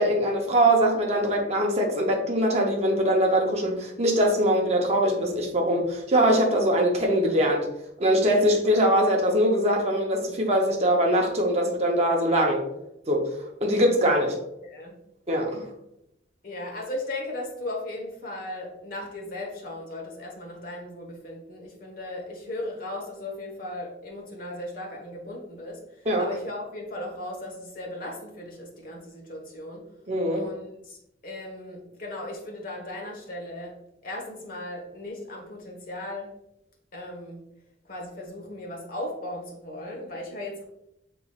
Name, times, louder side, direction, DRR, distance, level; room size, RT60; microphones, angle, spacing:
voice 1, 0.0-7.7 8.0-12.6 13.1-13.3 13.6-14.4 15.3-15.6 26.1-26.3 30.1-30.4, equal, 35° right, 1 dB, 0.7 m, -22 dB
voice 2, 14.6-15.0 16.4-29.8 30.3-33.8 34.0-36.3 36.9-37.4 37.9-40.6, left 1 dB, 50° left, 0 dB, 1.2 m, -37 dB
6.7 x 3.0 x 2.3 m, 0.83 s
head